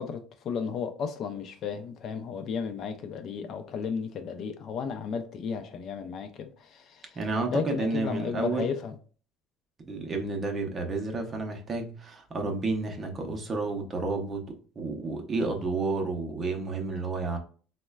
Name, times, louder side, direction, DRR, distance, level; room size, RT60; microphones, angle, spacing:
voice 1, 0.0-7.1 7.5-8.9, left 6 dB, 40° left, 0.4 m, -34 dB
voice 2, 7.1-8.7 9.8-14.4 14.8-17.4, right 3 dB, 25° right, 0.6 m, -31 dB
4.1 x 2.1 x 2.2 m
cardioid pair, 160°, 0 cm